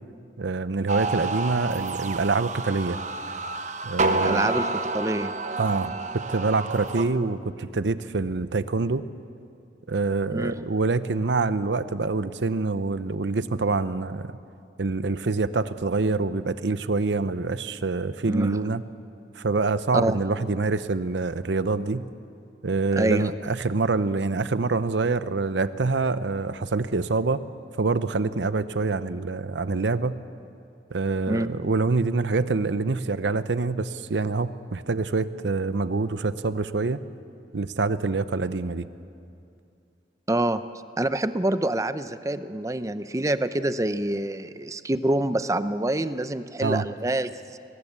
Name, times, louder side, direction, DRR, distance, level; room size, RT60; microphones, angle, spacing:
voice 1, 0.4-3.0 3.8-4.5 5.6-5.9 6.3-9.0 9.9-14.4 14.8-18.8 19.4-22.0 22.6-27.4 27.8-30.2 30.9-37.0 37.5-38.9 46.6-46.8, right 3 dB, 80° right, 13 dB, 0.7 m, -26 dB
sound 1, 0.9-7.0, right 3 dB, 40° right, 0.9 m, -29 dB
voice 2, 4.1-5.3 10.3-10.6 18.2-18.6 19.9-20.2 23.0-23.3 31.3-31.5 40.3-40.6 41.0-47.6, right 1 dB, 20° right, 12 dB, 0.6 m, -26 dB
22.0 x 19.5 x 8.2 m, 2.5 s
head